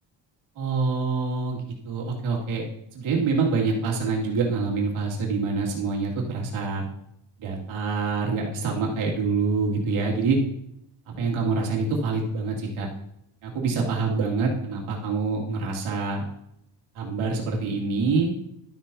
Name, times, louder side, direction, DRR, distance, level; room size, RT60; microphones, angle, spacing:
voice 1, 0.6-2.7 2.9-6.8 7.4-10.4 11.1-12.9 13.4-16.2 16.9-18.3, right 4 dB, 80° right, -2 dB, 2.4 m, -26 dB
12.0 x 7.1 x 2.7 m, 0.77 s
cardioid pair, 130°, 48 cm